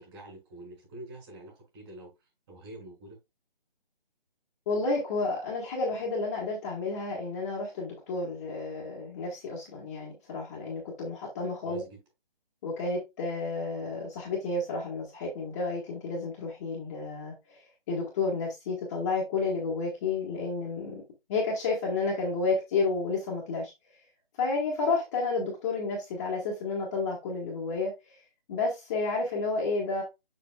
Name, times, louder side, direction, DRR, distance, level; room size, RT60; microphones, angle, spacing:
voice 1, 0.0-2.1 2.5-3.2 11.6-12.0, right 1 dB, 30° right, 1 dB, 4.6 m, -46 dB
voice 2, 4.7-11.8 12.6-21.0 21.3-23.7 24.4-28.2 28.5-30.0, left 3 dB, 15° left, -4 dB, 1.2 m, -31 dB
6.8 x 6.7 x 2.2 m, 0.23 s
hypercardioid pair, 160°, 29 cm